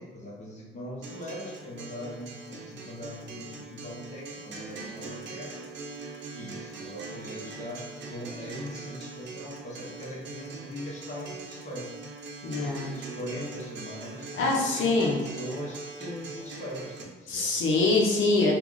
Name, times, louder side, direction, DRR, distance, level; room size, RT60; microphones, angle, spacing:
voice 1, 0.0-11.9 12.6-14.4 14.7-17.5, left 1 dB, 35° left, -4 dB, 1.1 m, -41 dB
Acoustic guitar, 1.0-17.0, right 4 dB, 65° right, 0.7 m, -42 dB
voice 2, 12.4-12.9 14.3-15.2 17.3-18.6, left 3 dB, 80° left, -2 dB, 0.8 m, -24 dB
2.9 x 2.3 x 3.9 m, 1.3 s
cardioid pair, 90°, 20 cm